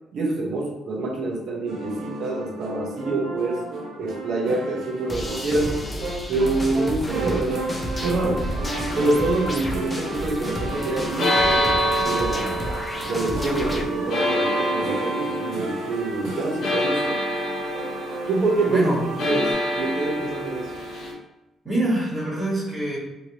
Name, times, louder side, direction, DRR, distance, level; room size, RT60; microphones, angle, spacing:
voice 1, 0.1-3.6 4.0-5.8 6.3-7.7 8.0-8.4 8.9-12.5 13.0-17.3 18.3-18.8 19.2-20.7, right 2 dB, 65° right, -1 dB, 0.8 m, -26 dB
sound 1, 1.7-19.5, right 2 dB, 90° right, 0.9 m, -33 dB
sound 2, 5.1-13.8, left 1 dB, 15° left, 0.5 m, -31 dB
sound 3, 10.7-21.1, equal, 60° left, 0.7 m, -27 dB
voice 2, 18.7-19.0 21.6-23.0, right 1 dB, 25° right, -8 dB, 1.3 m, -25 dB
2.8 x 2.8 x 2.9 m, 1.0 s
cardioid pair, 110°, 0 cm